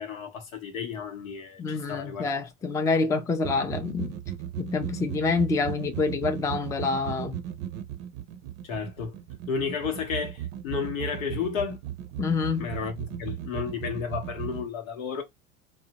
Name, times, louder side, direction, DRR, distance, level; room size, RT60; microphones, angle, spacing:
voice 1, 0.0-2.3 8.6-9.2 9.5-11.8 12.6-15.2, left 6 dB, 90° left, 0.9 m, -32 dB
voice 2, 1.6-4.1 4.6-7.4 12.2-12.7, left 4 dB, 10° left, 0.3 m, -27 dB
sound 1, 3.4-14.7, right 11 dB, 50° right, 0.5 m, -36 dB
2.7 x 2.1 x 2.8 m
hypercardioid pair, 90°, 39 cm